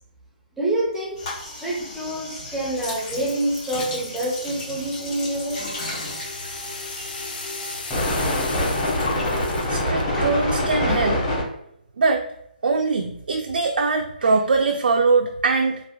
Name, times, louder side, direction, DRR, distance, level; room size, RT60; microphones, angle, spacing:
voice 1, 0.6-5.7 6.9-7.2, right 1 dB, 5° right, -2 dB, 0.5 m, -27 dB
sound 1, 1.1-8.1 8.3-10.7, left 2 dB, 45° left, 1.5 m, -36 dB
sound 2, 4.5-11.4, left 1 dB, 15° left, 1.0 m, -26 dB
sound 3, 5.1-10.0, left 3 dB, 70° left, 0.8 m, -36 dB
voice 2, 9.7-11.2 12.0-12.2 12.6-15.8, right 4 dB, 80° right, 4 dB, 0.3 m, -22 dB
3.4 x 2.4 x 2.3 m, 0.74 s
hypercardioid pair, 160°, 5 cm